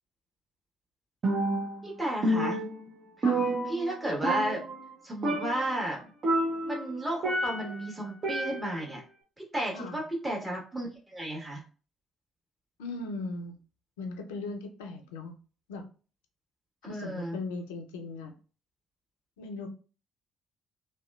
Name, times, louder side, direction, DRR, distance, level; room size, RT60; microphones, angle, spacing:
Percussion, 1.2-1.9 2.2-4.0 4.2-4.9 5.2-5.7 6.2-7.8 8.2-8.9, right 1 dB, 45° right, 0.6 m, -29 dB
voice 1, 1.8-2.6 3.2-3.3 3.7-4.6 5.0-6.1 6.7-9.0 9.4-11.6 16.9-17.4, right 1 dB, 20° right, -2 dB, 1.4 m, -33 dB
voice 2, 3.2-3.6 9.7-10.0 12.8-13.6 14.0-15.4 15.7-15.8 16.8-18.4 19.4-19.7, left 3 dB, 75° left, 4 dB, 0.4 m, -38 dB
2.8 x 2.2 x 2.3 m, 0.37 s
figure-of-eight pair, 45°, 0 cm